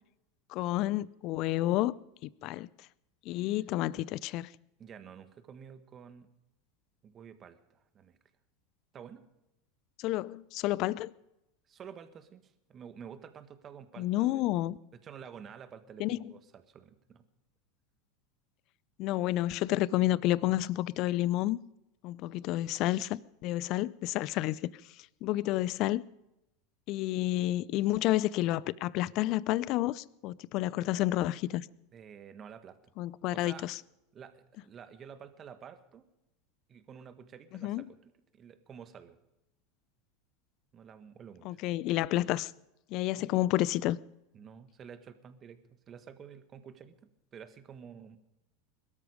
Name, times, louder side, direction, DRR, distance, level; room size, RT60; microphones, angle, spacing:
voice 1, 0.5-1.9 2.2-2.7 3.3-4.5 10.0-11.1 14.0-14.8 16.0-16.2 19.0-21.6 22.0-24.7 25.2-26.0 26.9-31.7 33.0-33.7 37.6-37.8 41.4-42.5 42.9-44.0, left 15 dB, 55° left, 0.5 m, -30 dB
voice 2, 4.8-6.3 7.0-8.2 8.9-9.3 11.7-14.4 14.9-17.2 31.9-32.9 33.3-33.6 34.1-36.1 36.7-38.0 38.3-39.2 40.7-41.6 43.1-43.3 44.3-46.9 47.3-48.2, right 7 dB, 35° right, 1.7 m, -50 dB
21.5 x 13.0 x 5.1 m
hypercardioid pair, 90°, 0 cm